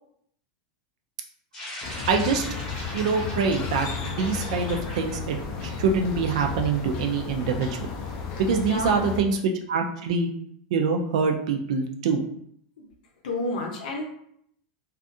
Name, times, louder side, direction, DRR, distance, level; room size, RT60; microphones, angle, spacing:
sound 1, 1.5-6.2, left 1 dB, 15° left, 0.8 m, -39 dB
sound 2, 1.8-9.2, left 5 dB, 30° left, 0.3 m, -33 dB
voice 1, 2.1-2.4 2.9-7.9 8.4-10.3 10.7-12.2, right 5 dB, 60° right, 4 dB, 0.3 m, -25 dB
voice 2, 8.5-9.1 12.8-12.9 13.2-14.0, left 2 dB, 80° left, 0 dB, 0.6 m, -30 dB
2.5 x 2.3 x 2.6 m, 0.68 s
supercardioid pair, 180°, 4 cm